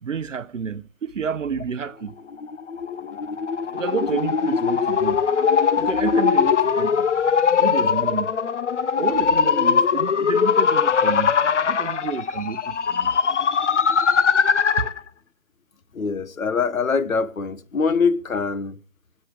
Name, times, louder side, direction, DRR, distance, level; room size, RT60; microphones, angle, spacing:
voice 1, 0.0-2.1 3.7-5.2 5.8-7.1 7.6-8.3 9.0-11.3 11.7-13.1 14.8-14.9, right 6 dB, 65° right, 1.0 m, -29 dB
sound 1, 2.3-15.0, left 6 dB, 60° left, 0.9 m, -21 dB
voice 2, 15.9-18.8, left 5 dB, 80° left, 1.4 m, -23 dB
26.5 x 9.2 x 3.4 m
hypercardioid pair, 170°, 40 cm